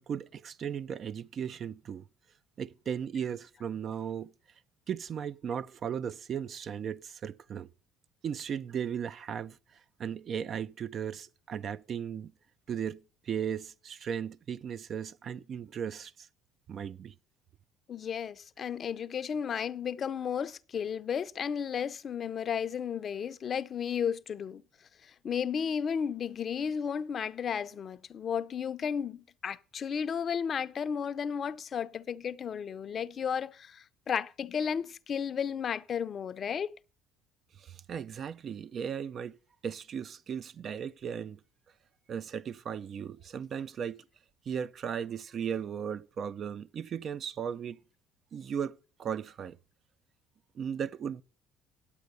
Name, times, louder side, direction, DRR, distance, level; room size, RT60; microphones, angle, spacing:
voice 1, 0.0-2.0 2.6-4.3 4.9-7.7 8.2-9.6 10.0-12.3 12.7-16.1 16.7-17.1 37.6-39.4 39.6-41.4 42.1-44.0 44.5-47.8 48.3-49.6 50.6-51.2, right 8 dB, 50° right, 0.5 m, -36 dB
voice 2, 17.9-24.6 25.2-36.7, left 7 dB, 45° left, 0.6 m, -33 dB
9.8 x 8.2 x 6.7 m
hypercardioid pair, 65°, 0 cm